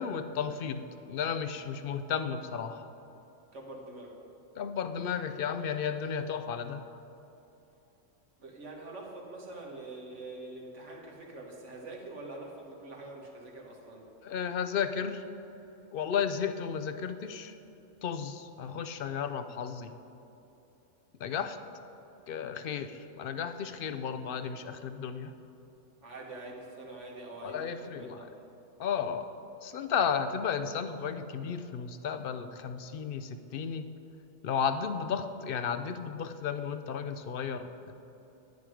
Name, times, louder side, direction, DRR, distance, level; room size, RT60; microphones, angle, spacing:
voice 1, 0.0-2.9 4.6-6.8 14.2-15.2 15.9-17.5 18.0-19.9 21.2-21.6 22.3-25.3 27.4-28.3 28.8-29.3 29.6-33.8 34.4-38.0, left 7 dB, 60° left, 9 dB, 0.7 m, -33 dB
voice 2, 3.5-4.2 8.4-14.0 26.0-28.3, right 2 dB, 75° right, -1 dB, 1.9 m, -45 dB
10.5 x 9.4 x 4.9 m, 2.9 s
omnidirectional pair, 1.2 m